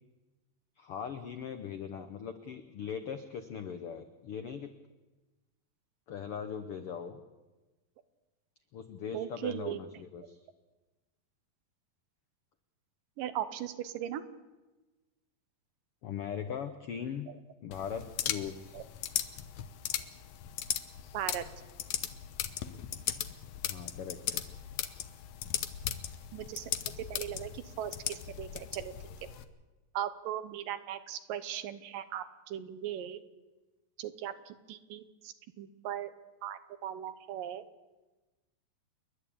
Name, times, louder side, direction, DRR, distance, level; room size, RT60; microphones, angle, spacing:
voice 1, 0.8-4.7 6.1-7.2 8.7-10.4 16.0-17.3 17.6-18.8 23.6-24.4, left 7 dB, 85° left, 9 dB, 1.2 m, -40 dB
voice 2, 9.1-9.8 13.2-14.2 17.3-17.4 18.7-18.8 21.1-21.5 26.3-26.7 27.0-28.9 29.9-33.2 34.0-36.1 36.4-37.7, right 11 dB, 80° right, 12 dB, 2.6 m, -38 dB
sound 1, 17.7-29.4, left 11 dB, 70° left, 1.9 m, -38 dB
29.5 x 11.0 x 8.5 m, 1.2 s
omnidirectional pair, 3.9 m